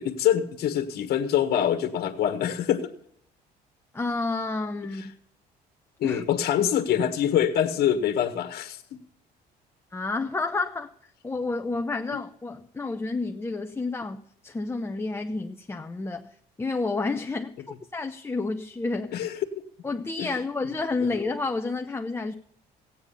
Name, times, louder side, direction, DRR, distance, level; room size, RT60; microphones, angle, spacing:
voice 1, 0.0-2.9 6.0-8.8 19.1-19.4 20.2-20.3 20.6-20.7, left 9 dB, 65° left, 7 dB, 1.5 m, -25 dB
voice 2, 3.9-5.0 6.0-6.2 9.9-10.9 11.2-16.3 16.6-19.3 19.8-22.3, left 3 dB, 15° left, 4 dB, 0.8 m, -30 dB
16.0 x 9.1 x 5.6 m, 0.70 s
cardioid pair, 110°, 17 cm